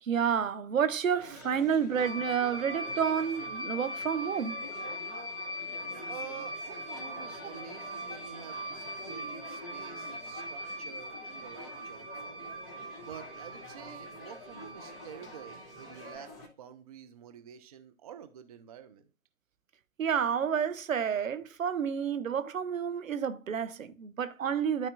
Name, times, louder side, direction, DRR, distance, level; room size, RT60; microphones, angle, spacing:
voice 1, 0.0-4.6 20.0-24.9, right 7 dB, 70° right, 0.9 m, -30 dB
sound 1, 1.2-16.5, left 2 dB, 25° left, 2.0 m, -48 dB
sound 2, 2.0-16.1, equal, 10° right, 1.7 m, -41 dB
voice 2, 6.1-12.5 13.0-19.1, right 9 dB, 30° right, 0.5 m, -49 dB
12.5 x 4.3 x 2.5 m
figure-of-eight pair, 135°, 41 cm